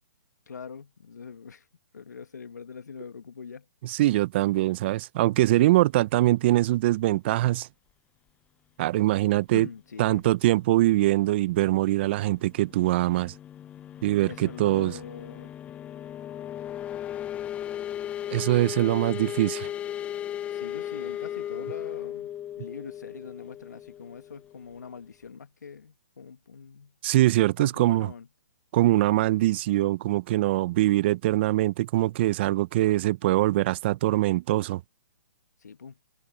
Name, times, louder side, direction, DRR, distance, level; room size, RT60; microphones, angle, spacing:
voice 1, 0.5-1.6 1.9-3.7 9.5-10.2 14.2-15.5 18.9-19.1 20.5-22.3 22.6-26.9 27.6-28.3 35.6-36.0, left 6 dB, 80° left, 1.9 m, -43 dB
voice 2, 3.8-7.7 8.8-9.7 10.0-13.3 14.0-15.0 18.3-19.7 27.0-28.1 28.7-34.8, right 16 dB, 40° right, 0.7 m, -23 dB
sound 1, 12.3-24.9, left 11 dB, 15° left, 0.5 m, -36 dB
hypercardioid pair, 140°, 9 cm